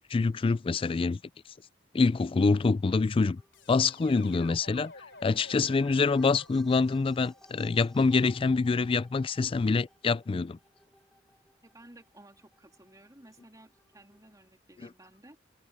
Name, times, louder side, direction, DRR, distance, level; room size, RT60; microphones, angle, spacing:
voice 1, 0.1-1.2 1.9-3.4 3.7-4.9 5.2-10.6, left 4 dB, 30° left, 0.3 m, -25 dB
sound 1, 3.2-14.5, equal, 5° left, 1.9 m, -61 dB
sound 2, 3.5-8.5, left 3 dB, 70° left, 3.8 m, -53 dB
voice 2, 11.6-15.4, right 1 dB, 20° right, 2.9 m, -55 dB
head